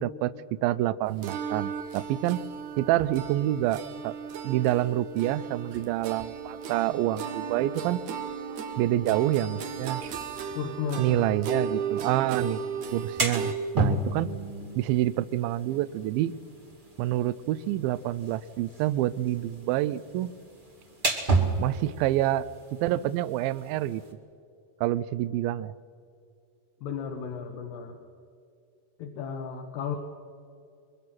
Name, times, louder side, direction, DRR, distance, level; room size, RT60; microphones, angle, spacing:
voice 1, 0.0-2.4 2.8-4.1 4.4-8.0 8.8-10.0 11.0-12.6 12.9-14.3 14.8-16.3 17.0-20.3 21.6-22.5 22.8-24.0 24.8-25.7, right 14 dB, 80° right, 15 dB, 2.1 m, -27 dB
sound 1, 1.2-13.5, right 6 dB, 65° right, 2.2 m, -35 dB
voice 2, 10.5-11.3 26.8-28.0 29.0-30.0, left 6 dB, 80° left, 3 dB, 3.4 m, -34 dB
sound 2, 12.8-24.1, right 3 dB, 30° right, 0.9 m, -33 dB
24.0 x 23.0 x 6.1 m, 2.5 s
omnidirectional pair, 4.7 m